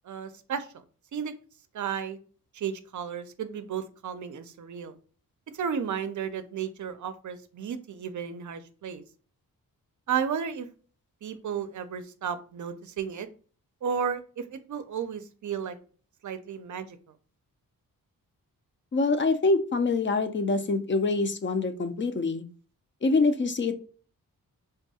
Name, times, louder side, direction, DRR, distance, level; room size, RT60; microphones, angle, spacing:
voice 1, 0.1-0.7 1.1-1.3 1.7-2.2 2.5-4.9 5.5-9.0 10.1-10.7 11.2-13.3 13.8-15.8 16.2-17.0, right 7 dB, 60° right, 11 dB, 0.5 m, -33 dB
voice 2, 18.9-22.4 23.0-23.7, left 3 dB, 35° left, 9 dB, 0.5 m, -25 dB
3.5 x 2.2 x 2.8 m, 0.40 s
cardioid pair, 70°, 35 cm